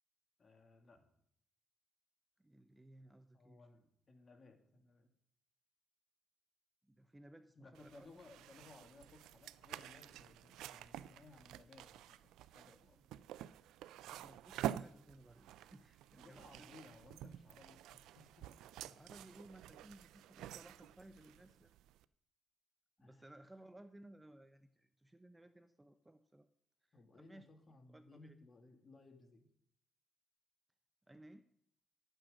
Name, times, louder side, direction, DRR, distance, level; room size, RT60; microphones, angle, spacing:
voice 1, 0.4-1.0 3.3-5.1 7.6-13.0 16.2-18.5 18.8-19.0 23.0-23.2 26.9-29.5, left 3 dB, 40° left, 5 dB, 2.3 m, -61 dB
voice 2, 2.4-3.7 6.8-8.1 14.1-16.7 18.8-21.7 23.0-26.5 26.8-27.5 27.9-28.4 31.1-31.5, right 1 dB, 10° right, 10 dB, 0.7 m, -60 dB
sound 1, 7.7-22.0, right 12 dB, 90° right, 0.4 m, -49 dB
11.5 x 9.2 x 5.0 m, 0.68 s
cardioid pair, 90°, 0 cm